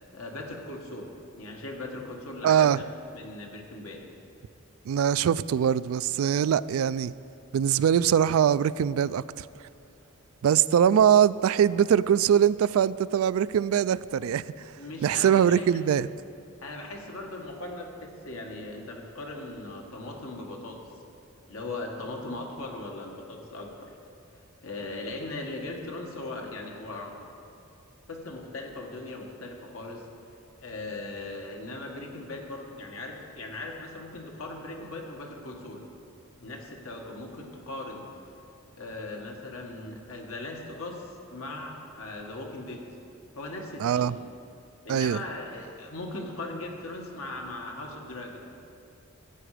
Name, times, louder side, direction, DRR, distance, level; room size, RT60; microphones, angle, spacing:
voice 1, 0.1-1.1 1.4-2.8 3.1-4.1 14.8-15.7 16.6-20.8 21.5-24.0 24.6-27.1 28.1-30.1 30.6-35.8 36.4-38.1 38.7-42.8 43.3-44.2 44.8-48.5, left 2 dB, 80° left, 1.7 m, -39 dB
voice 2, 2.4-2.8 4.9-7.1 7.5-9.5 10.4-14.7 15.0-16.1 43.8-44.2 44.9-45.2, right 9 dB, 85° right, 0.3 m, -22 dB
15.0 x 8.8 x 5.0 m
head